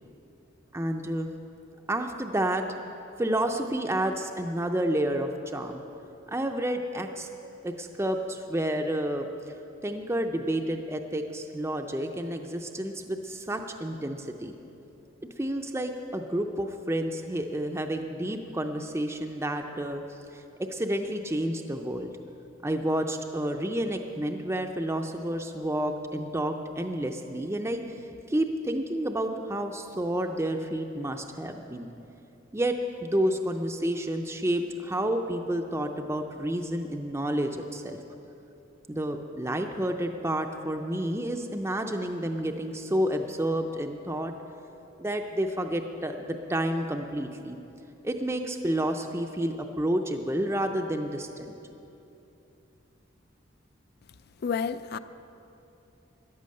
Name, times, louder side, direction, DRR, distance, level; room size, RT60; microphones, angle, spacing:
voice 1, 0.7-1.3 1.9-2.6 3.2-5.8 6.3-7.3 7.6-9.3 9.8-14.5 15.4-20.0 20.3-22.1 22.6-27.8 28.3-31.9 32.5-38.0 38.9-44.3 45.0-47.6 48.0-51.5, right 1 dB, 15° right, 4 dB, 0.5 m, -30 dB
voice 2, 54.4-55.0, left 6 dB, 55° left, 13 dB, 0.4 m, -29 dB
14.0 x 10.0 x 6.5 m, 2.9 s
head